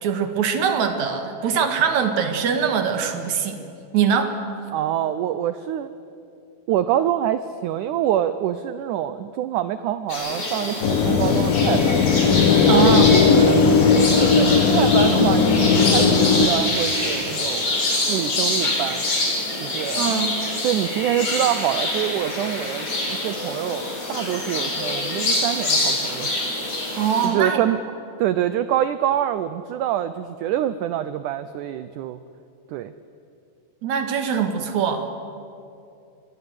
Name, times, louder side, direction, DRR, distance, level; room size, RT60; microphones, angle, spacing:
voice 1, 0.0-3.6 3.9-4.4 12.7-13.2 20.0-20.3 26.9-27.6 33.8-35.0, right 7 dB, 55° right, 6 dB, 2.9 m, -22 dB
voice 2, 4.7-5.9 6.7-12.0 12.5-13.7 14.2-17.7 18.1-19.1 19.6-20.2 20.6-26.3 27.2-27.8 28.2-32.2 32.7-32.9, right 11 dB, 85° right, 12 dB, 1.7 m, -25 dB
sound 1, 10.1-27.3, left 2 dB, 40° left, 5.7 m, -25 dB
sound 2, 10.8-16.5, left 5 dB, 70° left, 3.2 m, -17 dB
26.0 x 22.0 x 8.1 m, 2.6 s
omnidirectional pair, 4.4 m